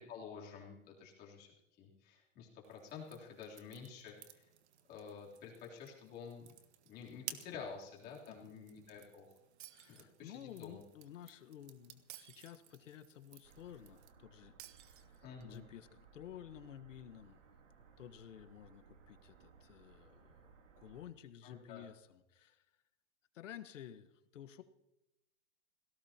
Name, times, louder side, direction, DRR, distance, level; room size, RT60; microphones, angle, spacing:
voice 1, 0.1-1.5 1.8-4.5 4.9-6.5 6.9-9.3 9.9-10.8 15.2-15.6 21.4-21.9, left 6 dB, 25° left, -2 dB, 3.4 m, -50 dB
sound 1, 2.6-14.1, right 10 dB, 60° right, 1.7 m, -56 dB
voice 2, 8.3-8.6 9.7-17.4 18.0-22.7 23.3-24.6, left 10 dB, 80° left, 10 dB, 1.5 m, -53 dB
Shatter, 9.6-10.6 12.1-13.1 14.6-15.6, right 14 dB, 45° right, 0.5 m, -56 dB
sound 2, 13.4-21.1, right 6 dB, 80° right, 2.7 m, -63 dB
26.5 x 17.5 x 2.9 m, 0.93 s
supercardioid pair, 165°, 37 cm